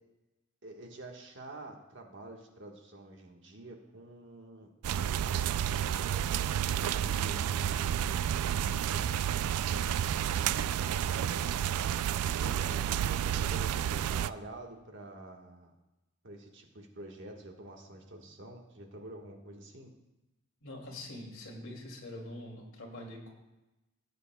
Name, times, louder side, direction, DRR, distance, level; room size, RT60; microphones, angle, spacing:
voice 1, 0.6-4.7 5.0-7.7 8.4-11.6 12.4-15.7 16.2-19.9, right 1 dB, 55° right, 1 dB, 1.4 m, -48 dB
sound 1, 4.8-14.3, right 9 dB, 90° right, 0.3 m, -30 dB
voice 2, 20.6-23.3, left 1 dB, 65° left, -2 dB, 2.4 m, -44 dB
17.5 x 8.3 x 2.2 m, 1.0 s
head